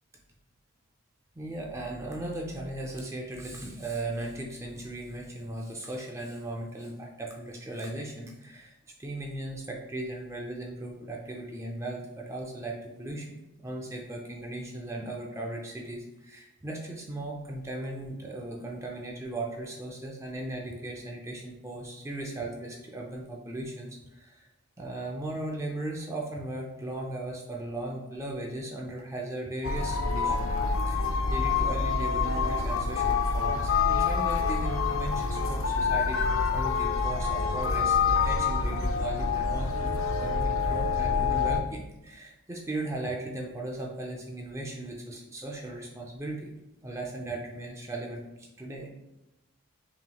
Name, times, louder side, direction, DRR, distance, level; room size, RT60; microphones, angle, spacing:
voice 1, 1.3-24.5 24.8-30.5 30.9-46.5 46.8-48.9, right 2 dB, 15° right, -1 dB, 0.4 m, -37 dB
sound 1, 29.6-41.6, left 5 dB, 65° left, 0.4 m, -27 dB
5.7 x 3.0 x 2.3 m, 0.95 s
head